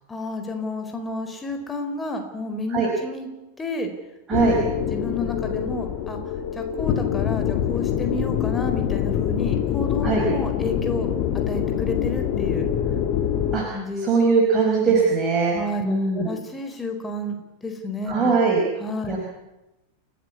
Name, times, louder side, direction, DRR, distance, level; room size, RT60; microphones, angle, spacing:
voice 1, 0.1-3.3 3.6-3.9 4.4-4.6 4.9-6.2 6.5-11.1 11.5-12.7 13.7-14.1 14.9-15.0 15.5-18.3 18.8-19.3, left 2 dB, 15° left, 6 dB, 4.5 m, -31 dB
sound 1, 4.3-13.6, left 10 dB, 40° left, 2.3 m, -25 dB
voice 2, 14.0-16.3 18.1-18.6 19.1-19.3, right 4 dB, 25° right, -1 dB, 5.1 m, -21 dB
30.0 x 15.0 x 8.5 m, 0.99 s
figure-of-eight pair, 90°, 0 cm